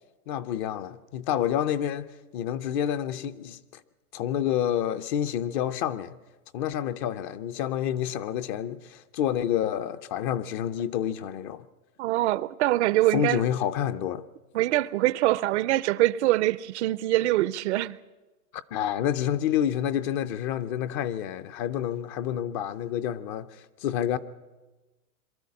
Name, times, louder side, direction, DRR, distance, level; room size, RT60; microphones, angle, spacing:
voice 1, 0.3-2.1 2.3-3.8 4.1-6.2 6.5-11.7 13.1-14.2 18.5-24.2, left 10 dB, 35° left, 0.6 m, -28 dB
voice 2, 12.0-13.4 14.5-18.0, right 16 dB, 50° right, 0.6 m, -24 dB
23.0 x 13.0 x 9.5 m
supercardioid pair, 150°, 44 cm